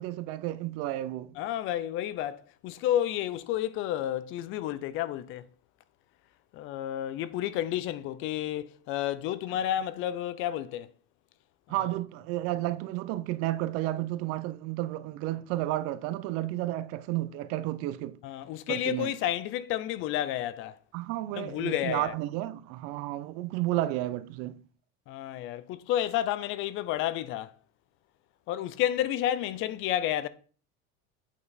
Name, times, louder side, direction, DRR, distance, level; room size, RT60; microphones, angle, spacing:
voice 1, 0.0-1.4 11.7-18.2 18.7-19.1 20.9-24.6, right 15 dB, 55° right, 0.6 m, -32 dB
voice 2, 1.4-5.5 6.5-10.9 18.2-20.8 21.3-22.1 25.1-27.5 28.5-30.3, left 12 dB, 45° left, 0.5 m, -31 dB
8.4 x 5.3 x 4.0 m
cardioid pair, 160°, 29 cm